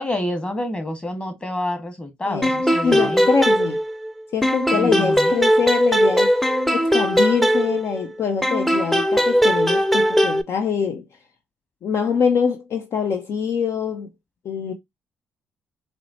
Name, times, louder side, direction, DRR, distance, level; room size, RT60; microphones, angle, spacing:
voice 1, 0.0-3.2 4.7-5.5, left 1 dB, 25° left, 1.3 m, -28 dB
sound 1, 2.4-4.1 4.4-8.0 8.4-10.4, equal, 5° left, 0.5 m, -19 dB
voice 2, 2.8-3.8 4.3-6.4 6.7-11.1 11.8-14.1 14.4-14.7, left 6 dB, 55° left, 0.5 m, -24 dB
4.1 x 2.1 x 2.7 m
hypercardioid pair, 50°, 5 cm